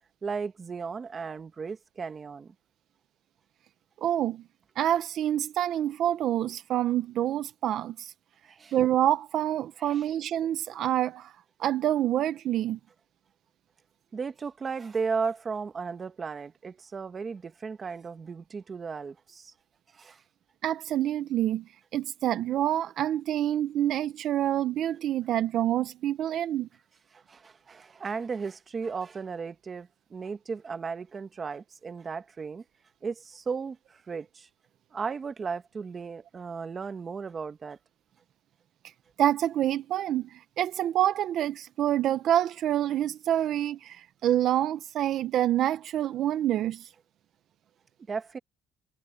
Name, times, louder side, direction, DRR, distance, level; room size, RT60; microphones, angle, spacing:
voice 1, 0.2-2.5 8.4-8.7 9.8-10.1 14.1-19.5 19.9-20.2 27.1-32.6 33.0-34.5 34.9-37.8 48.1-48.4, right 5 dB, 25° right, 1.3 m, -35 dB
voice 2, 4.0-4.4 4.8-8.1 8.7-11.3 11.6-12.8 20.6-21.6 21.9-26.7 39.2-46.9, right 12 dB, 55° right, 0.7 m, -27 dB
cardioid pair, 145°, 0 cm